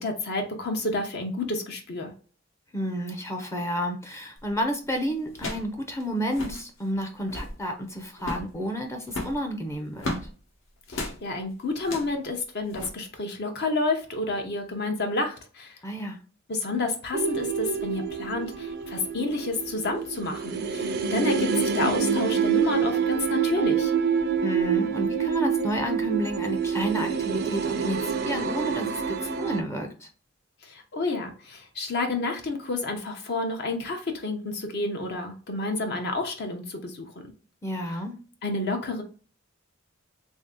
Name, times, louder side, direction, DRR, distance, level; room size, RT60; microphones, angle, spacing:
voice 1, 0.0-2.1 10.9-15.8 16.5-23.9 30.6-37.3 37.9-38.0 38.4-39.0, left 2 dB, 55° left, 4 dB, 0.7 m, -30 dB
voice 2, 2.7-10.1 15.8-16.2 24.4-30.1 37.6-38.2, equal, 15° left, 4 dB, 0.5 m, -31 dB
sound 1, 4.4-4.6 5.3-5.7 6.0-6.1 6.3-6.6 7.1-7.6 8.2-8.5 9.1-10.3 10.9-11.2 11.8-12.2 12.7-12.9, left 2 dB, 75° left, 1.0 m, -34 dB
sound 2, 17.1-29.6, right 6 dB, 50° right, 0.4 m, -27 dB
3.2 x 2.7 x 3.6 m, 0.38 s
head